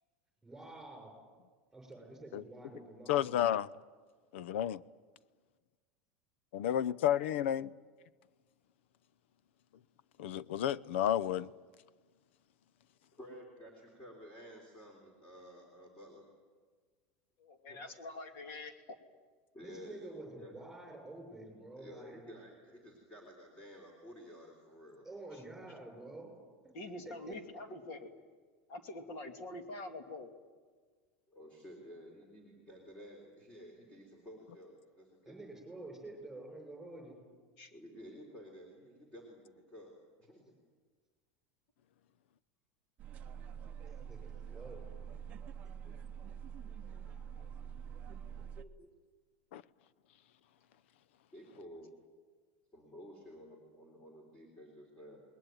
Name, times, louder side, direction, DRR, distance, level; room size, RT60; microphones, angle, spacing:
voice 1, 0.4-1.1 1.7-3.4 19.6-22.2 25.0-26.3 26.6-26.7 27.0-27.3 35.2-37.2 43.9-44.8, right 2 dB, 5° right, 6.3 m, -49 dB
voice 2, 3.1-3.7 4.3-4.8 6.5-7.7 10.2-11.5, left 11 dB, 75° left, 0.7 m, -31 dB
voice 3, 13.1-16.3 17.7-17.8 19.5-20.6 21.8-25.1 31.3-35.4 37.7-40.5 43.9-44.3 45.8-46.1 46.9-47.4 48.1-48.2 48.6-48.9 51.3-51.9 52.7-55.2, equal, 15° left, 3.7 m, -53 dB
voice 4, 17.4-18.7 26.7-28.1 28.7-30.3 37.6-37.7, left 2 dB, 40° left, 2.6 m, -45 dB
sound 1, 43.0-48.6, right 8 dB, 25° right, 0.8 m, -46 dB
28.5 x 20.5 x 9.2 m
supercardioid pair, 180°, 6 cm